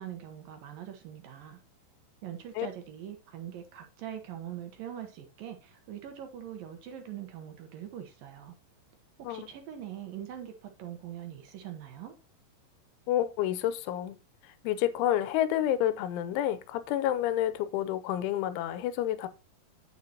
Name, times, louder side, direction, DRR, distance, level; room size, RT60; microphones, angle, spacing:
voice 1, 0.0-1.6 2.2-8.6 9.2-12.2, right 10 dB, 75° right, 2.1 m, -42 dB
voice 2, 13.1-14.2 14.6-19.3, left 12 dB, 85° left, 3.2 m, -29 dB
9.7 x 8.3 x 2.8 m
omnidirectional pair, 5.4 m